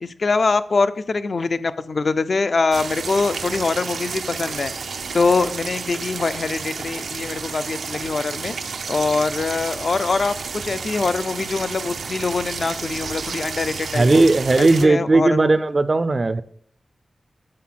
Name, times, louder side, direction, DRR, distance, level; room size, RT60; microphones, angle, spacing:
voice 1, 0.0-4.7 5.1-8.5 8.9-14.2 14.6-15.5, left 4 dB, 50° left, 12 dB, 0.3 m, -23 dB
sound 1, 2.7-14.8, right 5 dB, 85° right, 0.5 m, -31 dB
voice 2, 13.9-16.4, right 2 dB, 35° right, 12 dB, 0.3 m, -16 dB
7.6 x 4.0 x 5.8 m, 0.63 s
wide cardioid pair, 135°, 0 cm